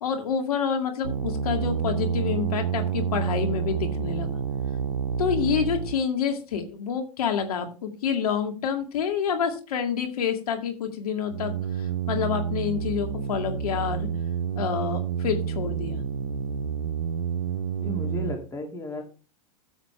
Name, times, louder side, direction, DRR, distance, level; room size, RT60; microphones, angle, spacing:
voice 1, 0.0-4.4 5.2-14.1 14.6-16.0, left 7 dB, 70° left, 4 dB, 2.2 m, -28 dB
sound 1, 1.0-6.0 11.3-18.4, right 8 dB, 85° right, 0.7 m, -29 dB
voice 2, 17.8-19.0, left 2 dB, 15° left, 1 dB, 2.5 m, -34 dB
13.5 x 8.1 x 3.2 m, 0.34 s
hypercardioid pair, 100°, 20 cm